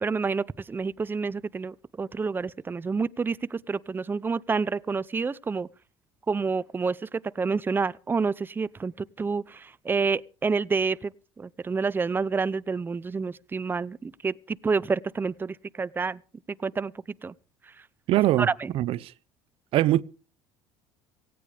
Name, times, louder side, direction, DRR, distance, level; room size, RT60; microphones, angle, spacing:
voice 1, 0.0-5.7 6.3-16.2 16.5-17.3 18.4-18.7, right 4 dB, 20° right, 0.6 m, -29 dB
voice 2, 18.1-19.1 19.7-20.0, right 15 dB, 60° right, 0.7 m, -23 dB
18.0 x 16.5 x 3.4 m
supercardioid pair, 105°, 11 cm